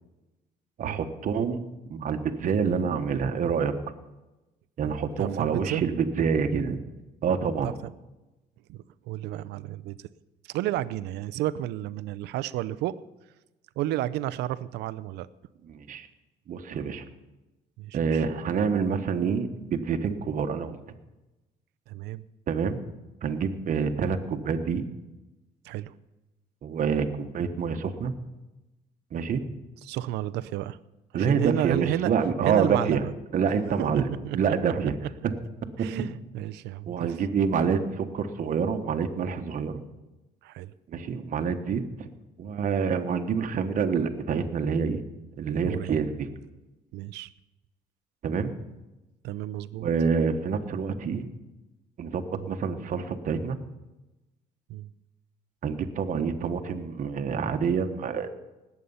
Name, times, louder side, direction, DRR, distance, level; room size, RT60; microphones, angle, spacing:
voice 1, 0.8-1.6 1.9-3.7 4.8-6.8 7.2-7.7 15.7-16.1 16.5-17.0 17.9-20.8 22.5-22.8 23.2-24.8 26.6-28.1 29.1-29.4 31.1-33.0 33.3-35.0 36.9-39.8 40.9-42.1 42.4-45.0 45.4-46.3 48.2-48.5 49.8-51.3 52.0-53.6 55.6-58.3, right 6 dB, 50° right, 7 dB, 1.3 m, -27 dB
voice 2, 4.9-5.8 7.6-7.7 8.7-10.1 10.4-12.9 13.8-15.3 17.8-18.2 21.9-22.2 25.6-25.9 29.8-30.8 31.1-32.1 32.4-33.1 33.9-34.7 35.8-37.2 40.4-40.7 45.6-46.0 46.9-47.3 49.2-49.9 52.3-52.6 54.7-54.9, right 14 dB, 85° right, 16 dB, 0.6 m, -32 dB
19.5 x 8.4 x 5.6 m, 1.0 s
cardioid pair, 110°, 17 cm